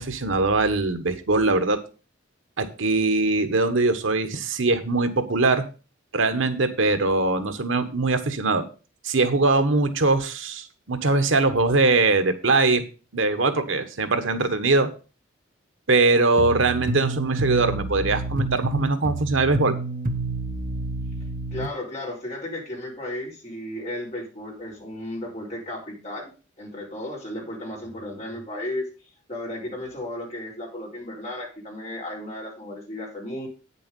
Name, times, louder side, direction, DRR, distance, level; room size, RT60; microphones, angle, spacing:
voice 1, 0.0-1.8 2.6-5.6 6.1-8.7 9.0-12.8 13.1-14.9 15.9-19.7, right 3 dB, 75° right, 9 dB, 1.2 m, -22 dB
sound 1, 16.4-21.7, right 2 dB, 45° right, 0.8 m, -29 dB
voice 2, 21.5-28.9 29.3-33.5, left 1 dB, 35° left, -3 dB, 3.9 m, -34 dB
9.2 x 6.8 x 5.3 m, 0.34 s
head